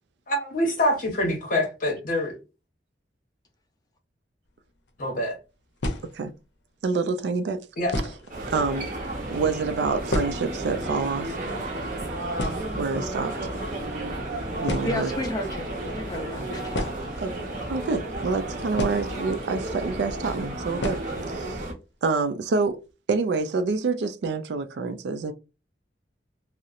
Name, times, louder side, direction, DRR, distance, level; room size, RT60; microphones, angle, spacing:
voice 1, 0.3-2.3 5.0-5.4 7.8-8.0, left 1 dB, 50° left, 0.8 m, -25 dB
sound 1, 4.8-4.9 5.8-6.4 7.3-7.4 7.9-8.4 8.7-8.8 9.0-9.2 9.6-10.7 11.0-11.1 11.3-11.6 11.9-12.0 12.4-13.3 14.2-14.3 14.6-15.2 16.7-17.8 18.7-19.6 19.8-19.9 20.8-21.2 21.6-21.7 22.0-22.1 22.5-22.9, left 1 dB, 90° left, 0.6 m, -31 dB
voice 2, 6.8-7.6 8.5-8.9 9.3-11.4 12.8-13.3 14.6-15.1 17.2-17.3 17.7-21.0 21.3-21.6 22.0-22.8 23.1-25.3, right 4 dB, 75° right, 0.4 m, -27 dB
sound 2, 8.3-21.7, right 1 dB, 45° right, 0.7 m, -32 dB
voice 3, 14.8-16.8, left 1 dB, 20° left, 0.5 m, -32 dB
2.8 x 2.0 x 2.4 m
head